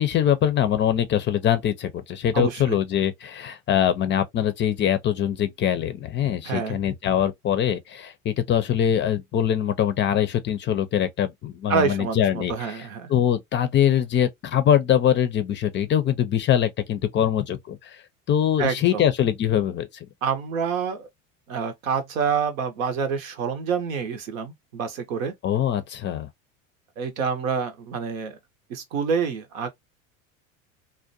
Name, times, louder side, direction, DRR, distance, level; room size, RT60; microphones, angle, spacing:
voice 1, 0.0-12.8 13.1-18.0 18.3-19.9 25.4-26.3, left 10 dB, 30° left, 0.4 m, -23 dB
voice 2, 2.3-2.8 6.4-6.8 11.7-13.1 18.6-19.0 20.2-21.1 21.5-25.3 27.0-28.4 28.7-29.7, right 6 dB, 85° right, 0.8 m, -27 dB
2.5 x 2.1 x 2.5 m
hypercardioid pair, 85°, 40 cm